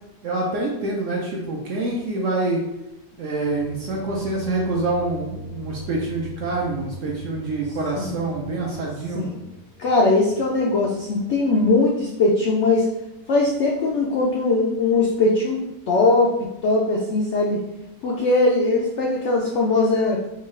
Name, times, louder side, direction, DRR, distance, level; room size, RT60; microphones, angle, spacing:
voice 1, 0.2-2.6 3.2-9.3, right 2 dB, 70° right, -2 dB, 0.7 m, -26 dB
sound 1, 3.4-12.3, left 1 dB, 40° right, 0.7 m, -41 dB
voice 2, 9.8-12.9 13.3-15.6 15.9-17.6 18.0-20.2, left 2 dB, 90° left, -2 dB, 0.6 m, -20 dB
3.6 x 2.3 x 3.1 m, 0.90 s
omnidirectional pair, 1.8 m